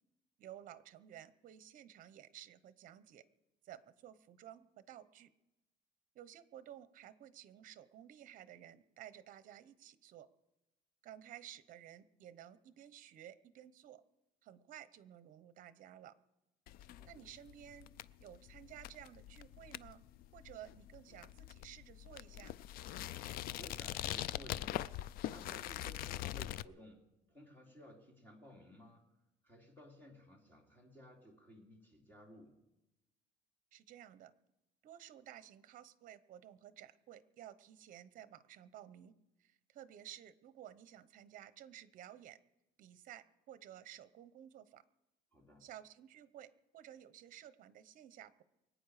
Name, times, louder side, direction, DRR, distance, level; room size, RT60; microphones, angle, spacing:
voice 1, 0.4-3.2 3.6-5.3 6.1-10.3 11.0-14.0 14.4-16.1 17.1-17.9 18.2-20.0 20.3-22.5 33.7-34.3 34.8-39.1 39.4-42.4 42.8-44.8 45.6-48.4, right 11 dB, 50° right, 14 dB, 0.8 m, -54 dB
sound 1, 16.7-26.6, left 13 dB, 60° left, 0.4 m, -43 dB
voice 2, 17.0-17.3 23.6-24.9 25.3-29.2 29.4-32.7 45.3-45.7, equal, 10° left, -1 dB, 3.0 m, -57 dB
24.5 x 9.0 x 4.9 m, 0.94 s
cardioid pair, 150°, 17 cm